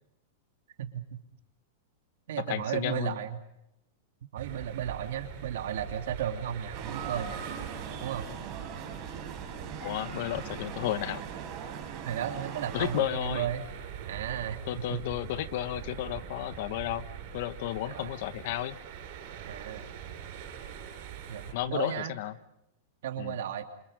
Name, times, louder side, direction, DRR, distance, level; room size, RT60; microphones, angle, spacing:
voice 1, 0.8-1.2 2.3-3.4 4.3-7.4 8.0-8.3 12.0-13.6 14.1-15.0 17.8-18.1 19.5-19.8 21.3-22.1 23.0-23.6, right 9 dB, 75° right, 5 dB, 3.0 m, -34 dB
voice 2, 2.5-3.2 9.8-11.2 12.7-13.5 14.7-17.1 17.3-18.8 21.5-22.4 23.2-23.4, left 13 dB, 50° left, 13 dB, 1.3 m, -32 dB
sound 1, 4.4-21.5, right 9 dB, 45° right, 7.7 m, -43 dB
sound 2, 6.7-13.0, right 7 dB, 25° right, 5.5 m, -40 dB
29.0 x 27.0 x 5.2 m, 0.82 s
supercardioid pair, 165°, 0 cm